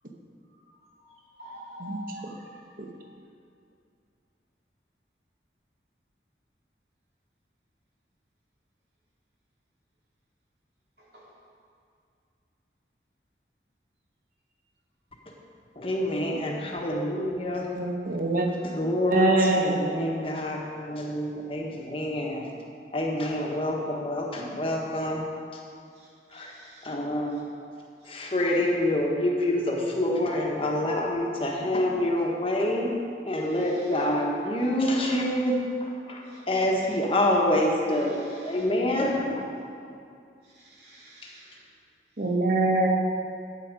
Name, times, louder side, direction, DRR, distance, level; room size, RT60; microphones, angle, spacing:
voice 1, 1.0-2.6 11.0-11.3 23.4-23.5 25.9-26.9 27.3-27.4 28.0-28.6 33.4-34.1 36.2-36.5 36.9-37.0 37.9-38.7 40.4-41.7 42.2-42.3, right 1 dB, 65° right, -6 dB, 2.7 m, -49 dB
voice 2, 15.8-17.7 18.6-22.5 22.9-25.2 26.3-26.5 26.8-27.4 28.0-32.9 33.3-39.2, left 1 dB, 30° left, -1 dB, 1.2 m, -27 dB
voice 3, 17.7-18.5 19.1-19.9 42.2-42.9, right 2 dB, 50° right, 2 dB, 1.0 m, -23 dB
8.5 x 8.1 x 5.2 m, 2.4 s
head